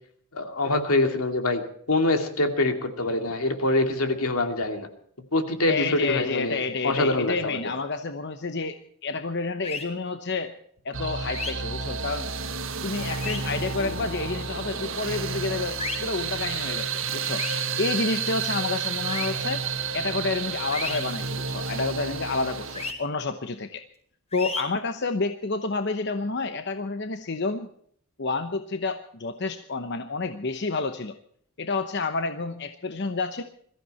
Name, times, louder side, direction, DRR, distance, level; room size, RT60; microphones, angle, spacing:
voice 1, 0.3-1.6 1.9-4.9 5.3-7.6 13.8-13.9, left 2 dB, 80° left, 5 dB, 2.6 m, -25 dB
voice 2, 5.7-10.5 10.8-12.3 12.8-17.4 17.8-19.6 19.9-23.8 24.3-27.7 28.2-31.2 31.6-33.4, left 3 dB, 50° left, 8 dB, 0.9 m, -29 dB
sound 1, 9.6-9.8 11.3-11.5 13.1-13.4 15.8-16.0 17.4-17.6 19.1-19.3 20.7-21.0 22.7-22.9 24.3-24.6, left 4 dB, 30° left, 4.7 m, -32 dB
sound 2, 10.9-22.9, right 5 dB, 65° right, 1.6 m, -31 dB
22.5 x 14.5 x 4.3 m, 0.63 s
head